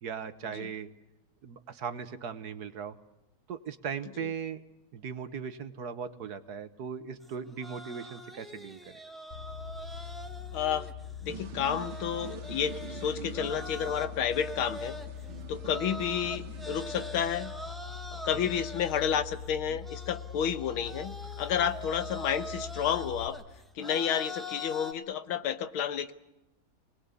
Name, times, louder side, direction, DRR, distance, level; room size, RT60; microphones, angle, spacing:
voice 1, 0.0-0.9 1.4-3.0 3.5-4.6 4.9-9.0, right 6 dB, 55° right, 11 dB, 1.4 m, -38 dB
sound 1, 7.2-24.9, left 1 dB, ahead, 1.2 m, -43 dB
sound 2, 9.3-23.3, left 8 dB, 35° left, 3.5 m, -43 dB
voice 2, 10.5-10.9 11.2-15.0 15.5-17.5 18.1-23.4 23.8-26.1, left 8 dB, 90° left, 12 dB, 1.9 m, -31 dB
sound 3, 11.3-17.1, right 8 dB, 90° right, 2.1 m, -46 dB
26.0 x 19.5 x 8.3 m, 0.93 s
omnidirectional pair, 2.2 m